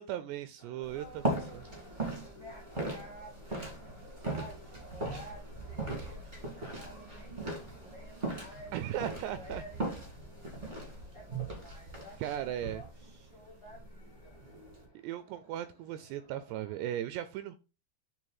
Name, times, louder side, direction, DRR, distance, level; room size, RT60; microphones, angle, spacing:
voice 1, 0.0-1.1 8.7-9.6 12.2-12.8 15.0-17.6, right 12 dB, 85° right, 11 dB, 2.4 m, -37 dB
sound 1, 0.6-17.0, left 1 dB, 60° left, 1.1 m, -58 dB
sound 2, 0.8-14.9, right 2 dB, 45° right, 0.6 m, -39 dB
voice 2, 0.9-8.8 9.1-10.5 10.8-14.4, equal, 80° left, -2 dB, 0.9 m, -52 dB
8.9 x 3.4 x 4.0 m, 0.30 s
omnidirectional pair, 5.2 m